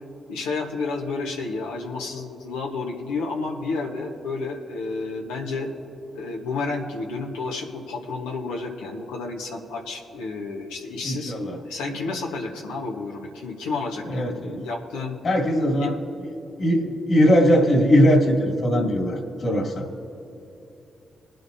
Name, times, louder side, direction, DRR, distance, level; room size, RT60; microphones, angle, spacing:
voice 1, 0.3-5.7 6.1-11.3 11.6-15.2 15.8-15.9, left 3 dB, 90° left, -1 dB, 1.3 m, -31 dB
voice 2, 11.0-11.6 14.1-14.6 15.2-16.3 16.6-19.9, equal, 60° left, 0 dB, 2.5 m, -20 dB
22.5 x 9.1 x 2.8 m, 2.8 s
hypercardioid pair, 40°, 0 cm